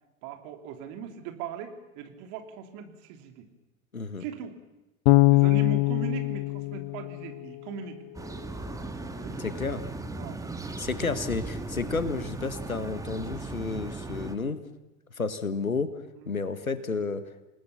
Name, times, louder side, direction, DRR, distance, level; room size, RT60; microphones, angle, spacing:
voice 1, 0.2-3.5 4.2-4.6 5.3-8.0 9.2-9.4 10.1-10.4 16.1-16.4, right 7 dB, 45° right, 5 dB, 3.4 m, -39 dB
voice 2, 3.9-4.2 9.4-9.8 10.8-14.6 15.2-15.9 16.3-17.5, left 4 dB, 85° left, 12 dB, 1.7 m, -31 dB
Bass guitar, 5.1-8.1, left 22 dB, 45° left, 1.0 m, -23 dB
sound 1, 8.1-14.3, right 2 dB, 10° right, 1.8 m, -37 dB
28.5 x 19.5 x 7.1 m, 1.0 s
figure-of-eight pair, 85°, 40 cm